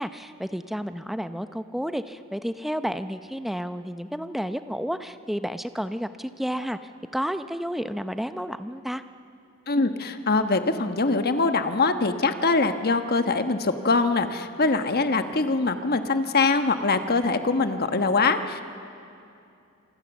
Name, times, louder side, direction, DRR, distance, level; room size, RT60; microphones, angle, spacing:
voice 1, 0.0-6.8 7.1-9.0, equal, ahead, 10 dB, 0.7 m, -31 dB
voice 2, 9.7-18.6, left 3 dB, 45° left, 8 dB, 1.2 m, -23 dB
27.0 x 24.5 x 7.2 m, 2.6 s
head